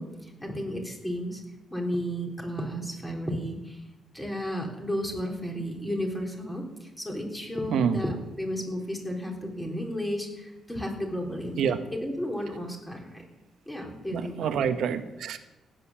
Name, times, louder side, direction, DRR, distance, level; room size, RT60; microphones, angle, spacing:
voice 1, 0.0-1.4 1.7-3.8 4.1-13.2 13.7-14.7, equal, 5° left, 1 dB, 3.8 m, -33 dB
voice 2, 14.1-15.4, right 7 dB, 75° right, 8 dB, 1.4 m, -27 dB
16.5 x 9.8 x 7.4 m, 1.0 s
cardioid pair, 115°, 0 cm